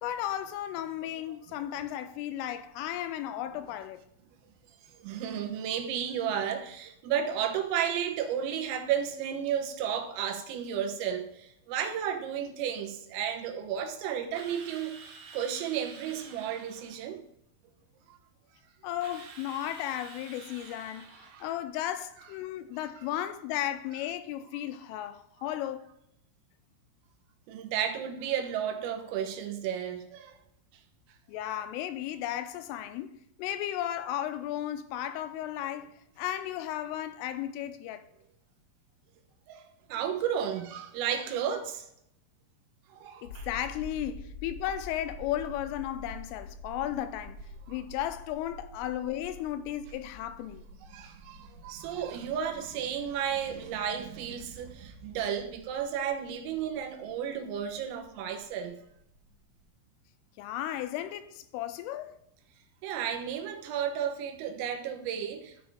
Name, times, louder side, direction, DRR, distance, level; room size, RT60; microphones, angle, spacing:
voice 1, 0.0-4.0 18.8-21.1 21.4-25.9 31.3-38.0 43.2-47.4 47.7-50.6 60.4-62.2, left 12 dB, 90° left, 3.2 m, -35 dB
voice 2, 5.0-14.9 15.3-17.2 18.1-18.2 21.2-21.5 22.8-23.1 27.5-30.4 39.5-39.6 39.9-41.9 42.9-43.5 47.7-47.8 50.8-58.8 62.8-65.7, right 8 dB, 90° right, 3.9 m, -33 dB
Drill, 14.3-17.0 19.0-21.5, right 5 dB, 65° right, 2.8 m, -49 dB
sound 1, 43.2-59.3 59.6-59.7, left 1 dB, 50° left, 2.5 m, -48 dB
12.5 x 7.0 x 3.6 m
omnidirectional pair, 5.8 m